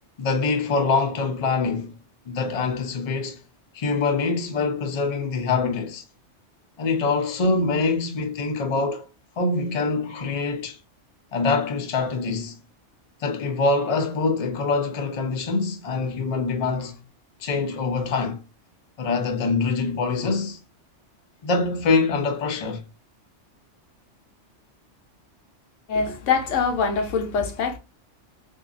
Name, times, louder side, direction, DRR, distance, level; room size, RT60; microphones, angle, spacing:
voice 1, 0.2-1.9 2.3-3.4 3.7-6.0 6.8-9.1 9.4-10.8 11.3-12.6 13.2-17.0 17.4-18.4 19.0-20.6 21.4-22.8, left 4 dB, 40° left, 0.6 m, -24 dB
voice 2, 25.9-27.8, left 5 dB, 85° left, 1.1 m, -24 dB
3.9 x 2.7 x 2.4 m
omnidirectional pair, 1.2 m